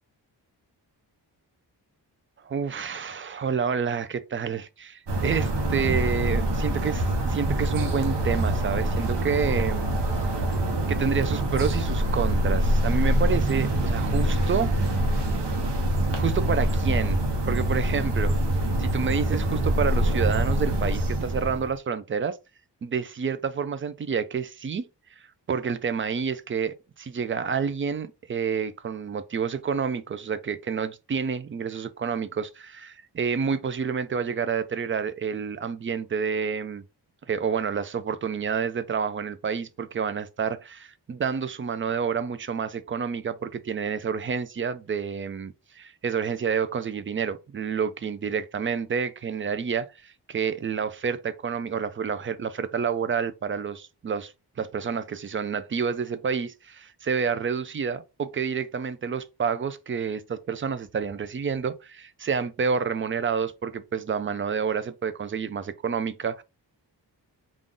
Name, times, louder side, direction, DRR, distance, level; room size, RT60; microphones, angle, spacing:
voice 1, 2.4-9.9 10.2-10.3 10.9-14.7 16.2-17.2 17.5-18.3 18.8-22.4 22.8-24.8 25.5-36.8 37.3-54.3 54.6-66.4, right 6 dB, 30° right, 0.4 m, -29 dB
sound 1, 5.1-21.7, right 1 dB, 80° right, 0.9 m, -25 dB
3.7 x 2.4 x 3.7 m
wide cardioid pair, 130°, 42 cm